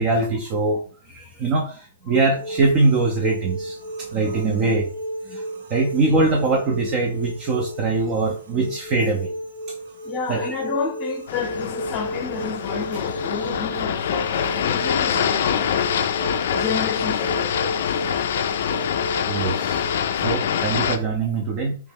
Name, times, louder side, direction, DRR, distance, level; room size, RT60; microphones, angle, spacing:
voice 1, 0.0-4.9 5.3-5.4 5.7-9.3 10.3-10.5 19.3-19.8 20.2-21.8, right 3 dB, 25° right, 0.5 m, -22 dB
sound 1, 2.3-20.0, right 1 dB, 75° right, 0.9 m, -33 dB
voice 2, 10.0-15.9 16.4-17.8, left 5 dB, 20° left, 0.7 m, -30 dB
sound 2, 11.3-21.0, left 8 dB, 55° left, 0.4 m, -25 dB
3.2 x 3.0 x 3.5 m
hypercardioid pair, 165°, 0 cm